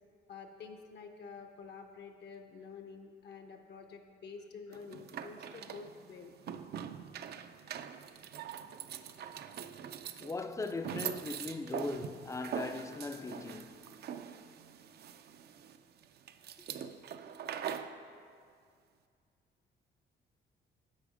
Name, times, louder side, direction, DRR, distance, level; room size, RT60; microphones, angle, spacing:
voice 1, 0.3-6.4, left 5 dB, 55° left, 0.7 m, -49 dB
sound 1, 4.7-18.0, right 8 dB, 55° right, 0.4 m, -43 dB
voice 2, 10.2-13.9, left 3 dB, 15° left, 0.4 m, -39 dB
8.2 x 4.8 x 4.9 m
cardioid pair, 90°, 20 cm